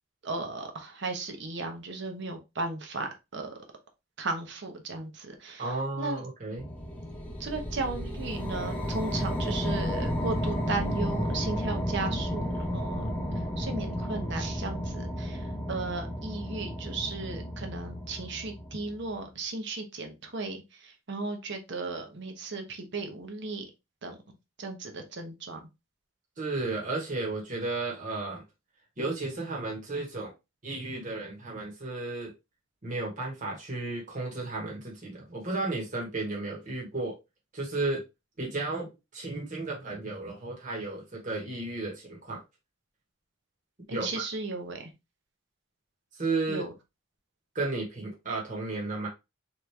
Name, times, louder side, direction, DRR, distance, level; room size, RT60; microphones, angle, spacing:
voice 1, 0.2-3.6 4.2-6.2 7.4-13.1 13.6-23.6 24.0-25.7 43.9-44.9 46.5-46.7, right 3 dB, 55° right, 0.9 m, -36 dB
voice 2, 5.6-6.7 26.4-28.4 29.0-30.3 30.6-32.3 32.8-37.2 37.5-38.0 38.4-42.4 43.9-44.2 46.2-46.6 47.5-49.1, right 3 dB, 40° right, 1.3 m, -33 dB
sound 1, 6.6-19.1, equal, 5° left, 0.7 m, -32 dB
3.7 x 3.1 x 3.3 m
head